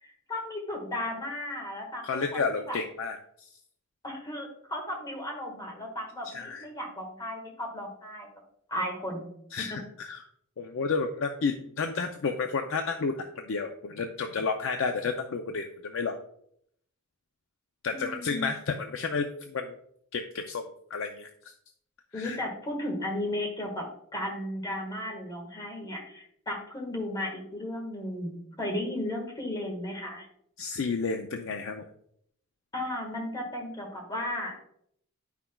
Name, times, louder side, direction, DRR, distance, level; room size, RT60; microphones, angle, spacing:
voice 1, 0.0-2.8 4.0-8.3 8.7-9.3 17.9-18.5 22.1-23.8 24.1-30.3 32.7-34.7, left 1 dB, 20° left, 0 dB, 1.5 m, -35 dB
voice 2, 2.0-3.5 6.2-6.7 9.5-10.2 10.6-16.2 17.8-19.7 20.1-21.5 22.1-22.4 30.6-31.9, left 4 dB, 60° left, 5 dB, 0.4 m, -31 dB
9.6 x 5.8 x 2.3 m, 0.70 s
head